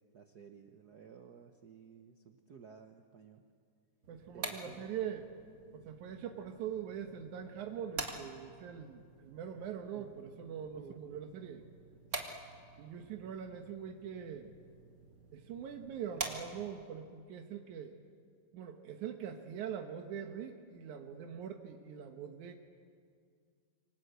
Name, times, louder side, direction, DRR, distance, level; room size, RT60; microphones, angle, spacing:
voice 1, 0.1-3.5 4.3-4.9 9.9-10.1 10.7-11.0 13.0-13.3, right 6 dB, 70° right, 5 dB, 0.9 m, -55 dB
sound 1, 4.0-16.9, right 3 dB, 30° right, 2.0 m, -47 dB
voice 2, 4.1-5.3 5.7-11.6 12.8-14.5 15.3-17.9 18.5-22.5, right 8 dB, 90° right, 5 dB, 2.7 m, -43 dB
28.0 x 25.0 x 8.1 m, 2.2 s
omnidirectional pair, 3.3 m